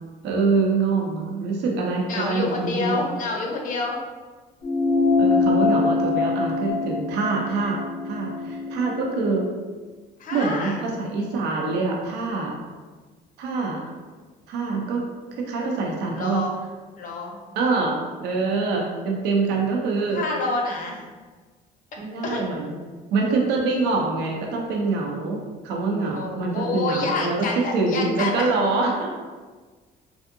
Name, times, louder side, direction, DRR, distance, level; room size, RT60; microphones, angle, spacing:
voice 1, 0.2-3.0 5.2-7.8 8.0-9.5 10.3-12.5 13.4-13.8 14.5-15.0 15.3-16.4 17.5-20.2 22.0-22.8 23.1-29.1, right 3 dB, 80° right, 0 dB, 0.6 m, -25 dB
voice 2, 2.1-4.0 10.2-10.8 15.6-15.7 16.1-16.5 17.0-17.3 20.1-21.0 22.2-22.4 26.1-28.5, left 3 dB, 50° left, 0 dB, 0.7 m, -28 dB
sound 1, 4.6-9.4, left 3 dB, 70° left, 1.0 m, -23 dB
3.4 x 2.6 x 2.6 m, 1.4 s
cardioid pair, 110°, 17 cm